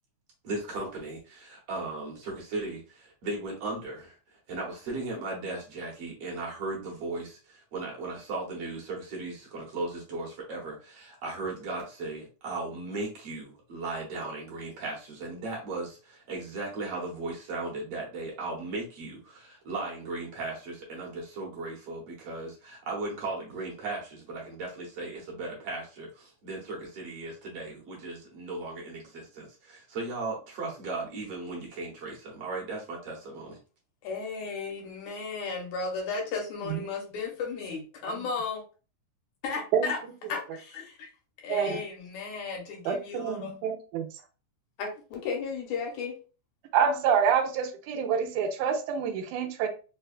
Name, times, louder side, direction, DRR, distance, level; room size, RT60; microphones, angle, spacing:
voice 1, 0.4-4.2 4.5-33.6, right 3 dB, 65° right, -2 dB, 1.8 m, -37 dB
voice 2, 34.0-38.6 39.4-40.0 40.3-40.8 41.4-43.6 44.8-46.2, left 4 dB, 75° left, 1 dB, 2.1 m, -34 dB
voice 3, 41.5-41.8 42.9-44.1 46.7-49.7, right 7 dB, 85° right, 6 dB, 2.0 m, -27 dB
4.9 x 2.2 x 2.3 m, 0.35 s
omnidirectional pair, 3.4 m